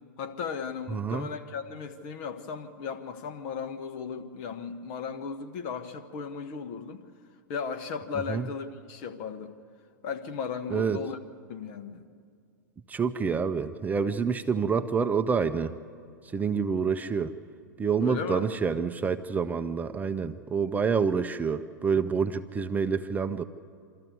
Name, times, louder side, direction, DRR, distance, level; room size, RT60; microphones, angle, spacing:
voice 1, 0.2-7.0 7.5-9.5 10.0-11.2 11.5-12.0 18.0-18.5, left 6 dB, 50° left, 7 dB, 1.5 m, -36 dB
voice 2, 0.9-1.3 8.3-8.5 10.7-11.0 12.9-15.8 16.3-17.3 17.8-23.4, right 6 dB, 15° right, 10 dB, 0.6 m, -27 dB
26.0 x 13.5 x 7.9 m, 2.2 s
hypercardioid pair, 105°, 10 cm